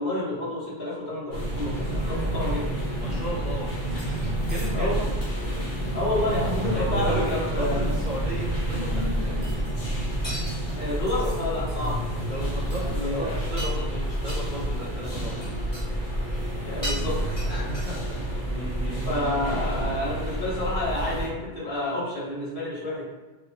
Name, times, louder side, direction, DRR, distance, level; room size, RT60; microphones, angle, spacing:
voice 1, 0.0-2.9 4.7-5.0 5.9-7.9 10.7-12.0 12.4-13.4 16.6-17.5 19.0-23.0, left 1 dB, 60° left, -10 dB, 1.4 m, -29 dB
sound 1, 1.3-21.3, right 1 dB, 85° left, 1.2 m, -29 dB
voice 2, 3.0-4.9 6.7-9.4 12.2-15.5 17.4-18.2 19.9-20.1, equal, 50° right, -6 dB, 0.6 m, -35 dB
sound 2, 4.0-4.2 4.5-5.0 9.4-10.0 10.2-11.4 11.7-11.9 12.3-12.4 12.7-13.1 13.4-13.9 14.3-14.4 15.3-15.9 16.2-16.6 16.8-18.1, equal, 20° left, 1.1 m, -38 dB
2.8 x 2.2 x 2.7 m, 1.2 s
omnidirectional pair, 1.1 m